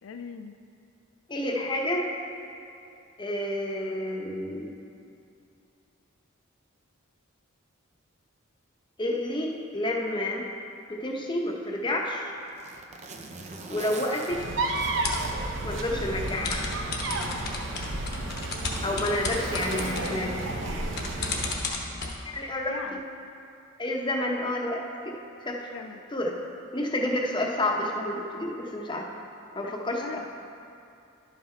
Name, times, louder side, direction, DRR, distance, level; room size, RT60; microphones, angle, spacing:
voice 1, 0.0-0.6 19.7-20.0 22.7-23.0 25.7-26.0 29.6-30.3, left 6 dB, 70° left, 7 dB, 0.3 m, -40 dB
voice 2, 1.3-2.0 3.2-4.7 9.0-10.5 10.9-12.3 13.7-14.4 15.6-16.6 18.8-20.4 22.3-22.7 23.8-25.1 25.4-25.7 26.1-26.3 26.7-29.0 29.5-30.3, left 1 dB, 25° left, 0 dB, 0.8 m, -29 dB
Zipper (clothing), 11.9-16.3 16.7-16.8 17.6-21.1 22.2-22.4, right 3 dB, 35° right, 0.5 m, -44 dB
sound 1, 14.3-21.6, right 2 dB, 65° right, 0.8 m, -32 dB
sound 2, 14.8-15.3 16.3-22.1, left 3 dB, 50° left, 1.0 m, -34 dB
11.0 x 5.7 x 4.4 m, 2.6 s
head